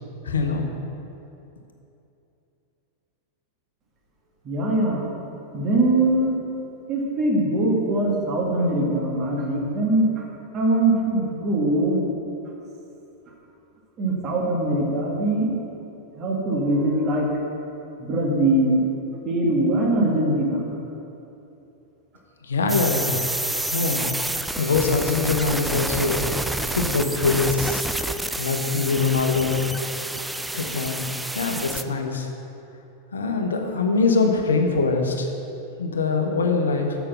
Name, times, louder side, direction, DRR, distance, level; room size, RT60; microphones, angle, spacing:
voice 1, 0.2-0.7 22.4-24.0 24.6-26.3 26.6-27.9 28.4-29.6 30.5-31.0 31.3-32.3 33.1-35.3 35.8-37.0, left 4 dB, 70° left, 3 dB, 0.9 m, -23 dB
voice 2, 4.4-5.0 5.5-6.3 6.9-10.2 10.5-12.0 14.0-15.5 16.2-17.3 18.0-18.8 19.2-20.7, right 1 dB, 30° right, -2 dB, 1.9 m, -22 dB
sound 1, 22.7-31.8, right 1 dB, 5° right, 0.3 m, -29 dB
6.9 x 6.7 x 6.0 m, 2.8 s
figure-of-eight pair, 90°, 0 cm